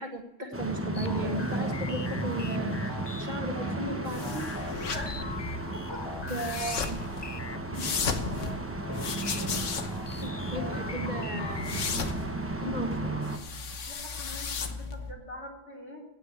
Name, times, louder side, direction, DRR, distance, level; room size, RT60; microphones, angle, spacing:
voice 1, 0.0-4.5 4.9-5.0 6.3-7.0 7.7-8.0 10.0-11.8 12.6-13.2, right 1 dB, 40° right, 2 dB, 1.9 m, -36 dB
sound 1, 0.5-13.4, right 2 dB, 10° right, 1.0 m, -34 dB
sound 2, 0.9-12.1, left 4 dB, 35° left, 0.4 m, -42 dB
sound 3, 4.1-15.1, left 5 dB, 90° left, 1.5 m, -36 dB
voice 2, 4.9-5.3 5.7-6.1 10.4-10.6 13.9-16.0, left 1 dB, 70° left, -1 dB, 3.3 m, -44 dB
16.5 x 6.2 x 8.4 m, 1.0 s
omnidirectional pair, 1.2 m